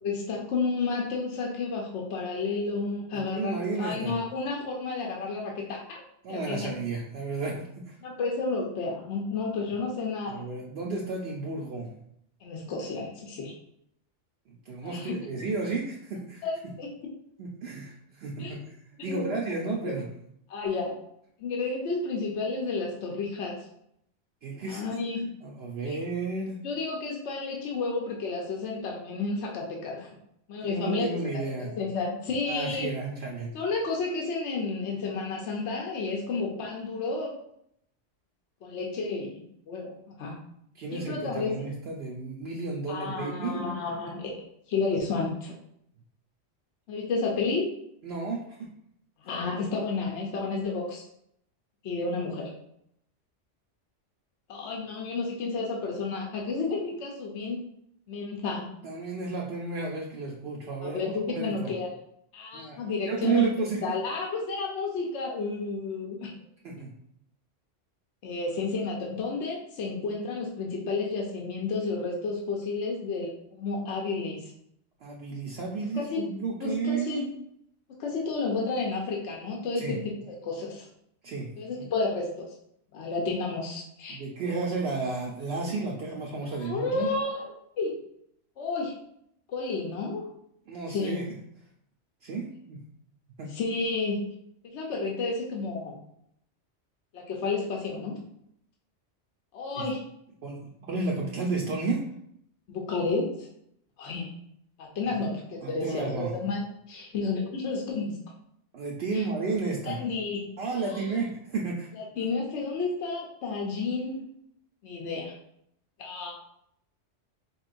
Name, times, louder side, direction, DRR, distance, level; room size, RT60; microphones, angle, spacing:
voice 1, 0.0-6.0 6.3-6.7 8.0-10.4 12.4-13.5 14.8-15.2 16.4-16.9 18.4-18.5 19.0-19.3 19.8-19.9 20.5-20.9 21.4-23.7 24.7-25.3 25.9-26.0 26.6-30.1 30.5-31.2 31.6-32.9 33.5-37.3 38.6-40.4 40.9-41.5 42.9-44.3 44.7-45.5 46.9-47.7 49.2-51.0 51.8-52.5 54.5-57.6 58.1-58.7 60.8-61.9 62.3-63.4 63.8-66.3 68.2-74.4 75.9-76.2 76.6-77.2 78.0-80.9 81.6-82.4 82.9-84.2 86.6-88.0 88.6-88.9 89.5-90.3 90.9-91.1 93.5-94.2 94.7-96.0 97.1-98.2 99.5-100.0 102.7-103.5 104.0-104.3 104.8-106.6 106.9-108.2 109.1-109.2 109.9-110.5 110.9-111.0 111.9-114.2 114.8-115.4 116.0-116.3, left 3 dB, 75° left, -1 dB, 1.0 m, -31 dB
voice 2, 3.1-4.2 6.2-8.0 10.3-11.9 14.7-16.4 17.4-18.8 19.0-20.1 24.4-24.8 25.4-26.6 30.6-31.7 32.4-33.5 40.8-43.6 48.0-48.7 58.8-61.7 62.5-62.8 63.0-64.0 66.6-66.9 75.0-77.3 79.8-80.0 81.2-81.5 81.8-81.9 84.1-87.1 90.7-91.2 92.2-92.8 93.4-93.6 99.8-99.9 100.4-102.1 105.0-105.3 105.6-106.3 108.7-110.0 110.6-111.9, right 4 dB, 65° right, -1 dB, 0.8 m, -32 dB
4.4 x 3.1 x 2.5 m, 0.72 s
omnidirectional pair, 1.2 m